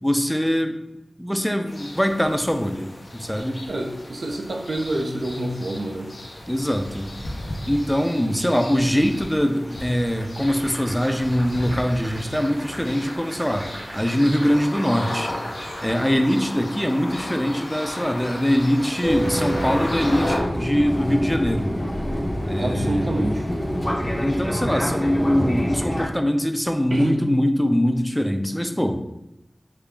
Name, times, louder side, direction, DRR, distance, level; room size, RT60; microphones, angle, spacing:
voice 1, 0.0-0.8 1.2-3.6 6.5-7.1 7.7-15.4 15.8-21.8 22.5-23.1 24.2-29.0, equal, 5° left, 6 dB, 0.4 m, -23 dB
sound 1, 1.7-20.4, left 1 dB, 75° left, 0.7 m, -35 dB
voice 2, 3.7-6.1 12.0-12.1 22.6-23.5 26.9-27.2, right 1 dB, 75° right, 2 dB, 0.4 m, -27 dB
sound 2, 10.2-16.6, right 1 dB, 55° right, 0.8 m, -40 dB
Fixed-wing aircraft airplane, 19.0-26.1, equal, 35° left, 0.7 m, -26 dB
3.2 x 2.4 x 3.6 m, 0.91 s
wide cardioid pair, 60°, 0 cm